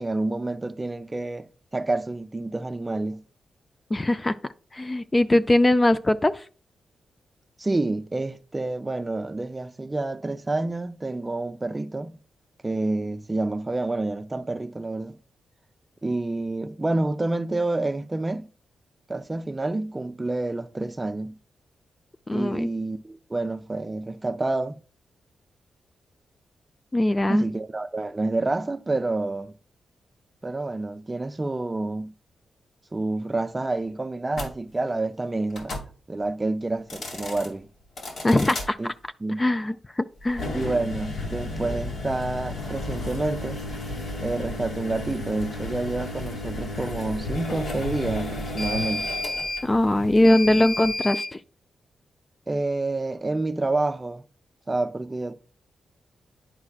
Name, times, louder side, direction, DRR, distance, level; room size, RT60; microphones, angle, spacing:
voice 1, 0.0-1.5 1.7-3.2 7.6-12.1 12.6-15.2 16.0-18.5 19.1-21.4 22.3-24.8 27.3-29.5 30.4-32.1 32.9-35.8 36.1-37.7 38.8-38.9 39.2-39.4 40.5-43.6 44.2-49.1 52.5-54.2 54.7-55.3, right 2 dB, 20° right, 0.6 m, -28 dB
voice 2, 3.9-4.3 4.7-6.4 22.3-22.7 26.9-27.4 38.2-38.8 39.4-40.6 49.6-51.4, left 1 dB, 20° left, 0.4 m, -21 dB
sound 1, 34.3-34.5 35.5-35.9 36.8-37.5 38.0-38.7 40.3-51.3, left 2 dB, 65° left, 2.3 m, -32 dB
10.5 x 4.8 x 2.4 m
cardioid pair, 90°, 0 cm